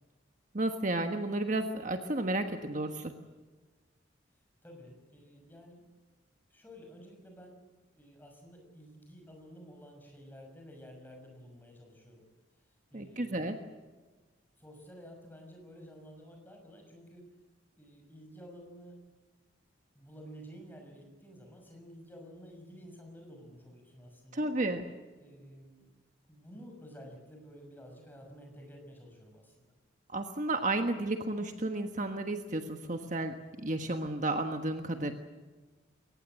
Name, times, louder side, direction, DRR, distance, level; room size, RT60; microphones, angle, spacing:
voice 1, 0.5-3.1 12.9-13.6 24.3-24.8 30.1-33.3 33.6-35.1, right 2 dB, 40° right, 6 dB, 1.4 m, -32 dB
voice 2, 4.6-5.8 6.5-7.6 8.0-12.2 12.9-13.5 14.6-17.3 17.8-19.0 19.9-24.5 25.2-25.9 26.3-29.7, equal, 10° left, 2 dB, 6.2 m, -51 dB
22.5 x 19.0 x 7.7 m, 1.3 s
head